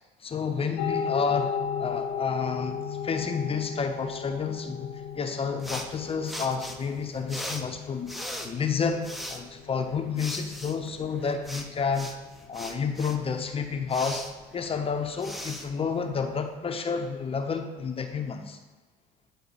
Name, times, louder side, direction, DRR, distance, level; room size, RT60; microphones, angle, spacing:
voice 1, 0.2-8.1 8.4-12.1 12.5-14.2 14.5-18.6, left 5 dB, 30° left, 6 dB, 0.8 m, -30 dB
sound 1, 0.8-15.5, left 7 dB, 85° left, 0.8 m, -37 dB
sound 2, 5.6-16.6, equal, ahead, 0.8 m, -40 dB
9.8 x 4.0 x 4.2 m, 1.2 s
supercardioid pair, 85°, 18 cm